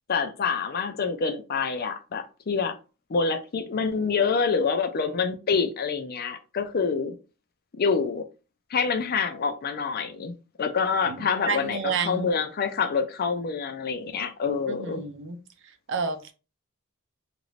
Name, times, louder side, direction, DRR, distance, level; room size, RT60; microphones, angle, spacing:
voice 1, 0.1-2.8 3.1-7.2 7.8-8.3 8.7-15.0, left 5 dB, 45° left, 0.5 m, -26 dB
voice 2, 11.4-12.3 14.7-15.4 15.9-16.3, right 5 dB, 60° right, 0.6 m, -29 dB
3.0 x 2.5 x 3.1 m
head